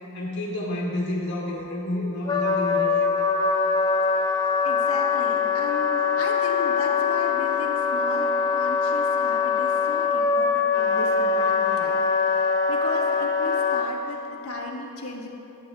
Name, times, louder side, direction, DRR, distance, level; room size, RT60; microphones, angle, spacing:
voice 1, 0.1-3.1, left 1 dB, 55° left, -3 dB, 1.9 m, -29 dB
Wind instrument woodwind instrument, 2.3-13.9, left 5 dB, 20° left, 0.4 m, -23 dB
voice 2, 4.2-15.3, left 2 dB, 75° left, 0 dB, 1.2 m, -36 dB
16.5 x 8.6 x 2.2 m, 2.9 s
head